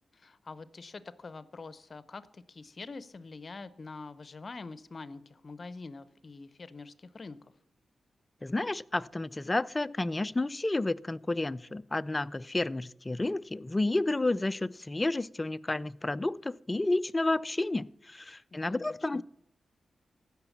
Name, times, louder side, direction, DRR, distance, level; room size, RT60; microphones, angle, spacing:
voice 1, 0.1-7.5 18.5-19.2, left 3 dB, 45° left, 0.7 m, -45 dB
voice 2, 8.4-19.2, left 2 dB, 20° left, 0.4 m, -31 dB
15.5 x 5.9 x 7.2 m
cardioid pair, 75°, 0 cm